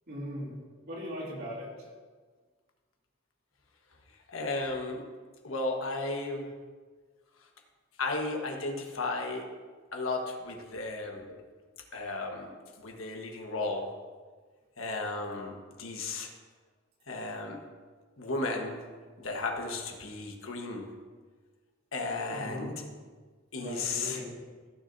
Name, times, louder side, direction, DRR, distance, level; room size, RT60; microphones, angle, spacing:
voice 1, 0.1-0.5 0.9-1.7 22.3-22.7 23.6-24.3, equal, 55° right, -5 dB, 3.0 m, -38 dB
voice 2, 4.3-5.0 5.4-6.5 8.0-9.5 9.9-11.3 11.9-13.9 14.8-16.3 17.1-17.6 18.2-18.9 19.2-20.9 21.9-22.9 23.5-24.2, left 3 dB, 90° left, 2 dB, 1.3 m, -34 dB
15.5 x 6.8 x 2.7 m, 1.5 s
head